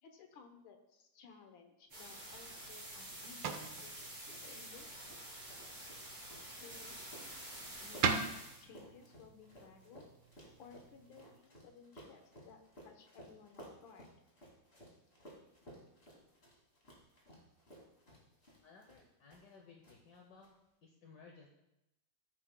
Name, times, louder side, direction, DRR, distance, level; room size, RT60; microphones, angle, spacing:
voice 1, 0.0-5.1 6.6-7.3 7.8-8.3 8.6-10.1 10.6-14.1, left 5 dB, 80° left, 5 dB, 1.8 m, -59 dB
sound 1, 1.9-8.6, right 1 dB, 45° right, 4.5 m, -49 dB
sound 2, 2.2-11.4, right 6 dB, 75° right, 1.5 m, -43 dB
sound 3, 2.9-19.6 19.8-20.5, equal, 30° left, 2.5 m, -59 dB
voice 2, 18.6-20.5 20.8-21.5, left 4 dB, 65° left, 1 dB, 1.5 m, -59 dB
15.0 x 8.1 x 2.2 m, 0.90 s
omnidirectional pair, 2.1 m